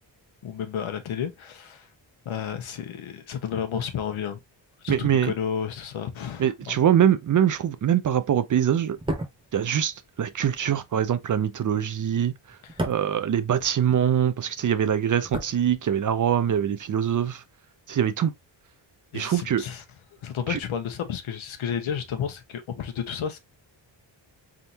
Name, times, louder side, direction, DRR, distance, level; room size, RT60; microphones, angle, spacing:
voice 1, 0.4-1.9 2.2-4.4 4.8-6.8 12.6-12.8 19.1-19.8 20.2-23.4, left 8 dB, 85° left, 1.1 m, -32 dB
voice 2, 4.9-5.3 6.4-9.0 9.5-12.3 12.8-17.4 17.9-18.3 19.1-19.6 20.5-20.6, right 9 dB, 45° right, 0.5 m, -23 dB
sound 1, 8.9-14.2 14.5-16.3 16.6-16.7, right 1 dB, 10° right, 0.9 m, -36 dB
4.0 x 3.6 x 2.8 m
wide cardioid pair, 145°, 46 cm